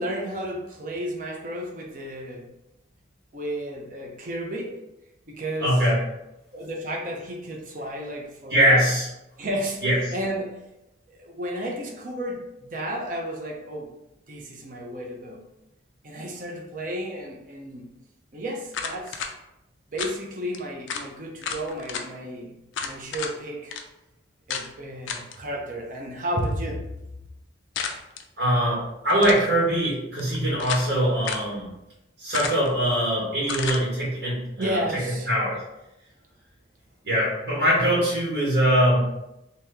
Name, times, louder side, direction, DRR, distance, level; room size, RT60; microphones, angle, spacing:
voice 1, 0.0-2.5 3.3-4.8 5.3-5.8 6.5-8.8 9.4-9.9 10.1-10.6 11.1-13.9 14.3-15.4 16.0-17.9 18.3-19.3 19.9-23.8 24.5-26.9 34.6-35.3, equal, 45° right, 0 dB, 0.6 m, -32 dB
voice 2, 5.6-6.0 8.5-9.1 9.8-10.0 28.4-31.7 32.2-34.8 35.3-35.6 37.0-39.0, equal, 65° right, -7 dB, 1.3 m, -22 dB
sound 1, 18.7-19.3 20.0-20.2 20.5-20.6 20.9-21.1 21.4-22.1 22.7-23.3 23.7-23.8 24.5-24.7 25.1-25.4 27.8-28.2 29.1-29.5 30.2-30.9 31.2-31.5 32.3-32.8 33.5-33.8, left 6 dB, 85° left, 0.4 m, -32 dB
2.9 x 2.8 x 3.5 m, 0.91 s
head